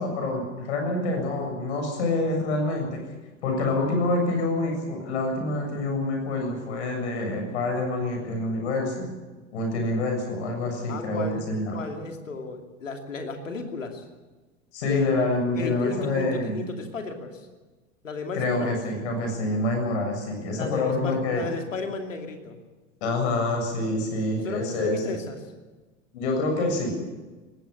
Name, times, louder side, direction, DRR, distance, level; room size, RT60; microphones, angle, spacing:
voice 1, 0.0-3.0 3.4-9.1 9.5-11.8 14.7-16.6 18.3-21.4 23.0-25.0 26.1-26.9, left 2 dB, 60° left, 3 dB, 7.4 m, -27 dB
voice 2, 10.9-11.5 11.7-14.0 14.8-15.2 15.5-17.4 18.0-18.8 20.5-22.6 24.4-25.4, left 3 dB, 75° left, 4 dB, 2.8 m, -33 dB
20.0 x 16.5 x 9.7 m, 1.2 s
figure-of-eight pair, 85°, 39 cm